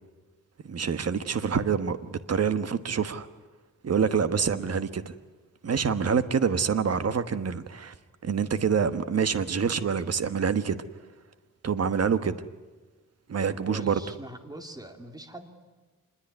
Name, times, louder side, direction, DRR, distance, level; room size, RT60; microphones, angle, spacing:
voice 1, 0.6-3.3 3.8-5.1 5.6-7.9 8.2-10.8 11.6-12.4 13.3-14.0, right 6 dB, 45° right, 1.3 m, -26 dB
voice 2, 13.5-15.5, right 1 dB, 10° right, 2.4 m, -43 dB
26.0 x 21.0 x 9.7 m
wide cardioid pair, 155°, 34 cm